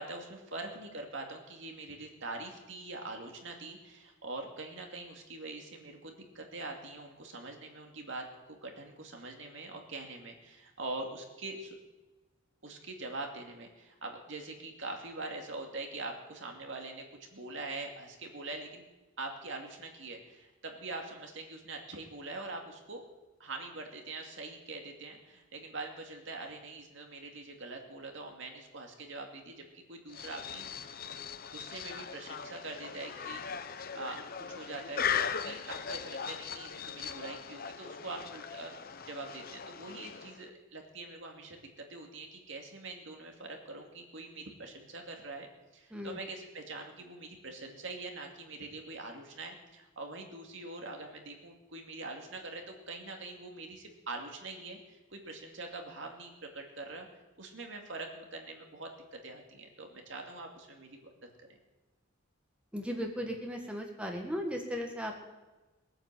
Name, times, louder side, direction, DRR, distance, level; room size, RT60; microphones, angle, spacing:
voice 1, 0.0-11.8 12.6-18.8 19.2-23.0 23.4-31.0 31.5-38.7 39.1-57.1 57.4-58.9 59.2-61.1 61.4-61.5, right 2 dB, 65° right, 2 dB, 2.4 m, -43 dB
sound 1, 30.1-40.5, left 7 dB, 45° left, 0.7 m, -39 dB
voice 2, 62.7-65.1, equal, 5° right, 2 dB, 1.6 m, -36 dB
20.5 x 9.0 x 7.6 m, 1.1 s
head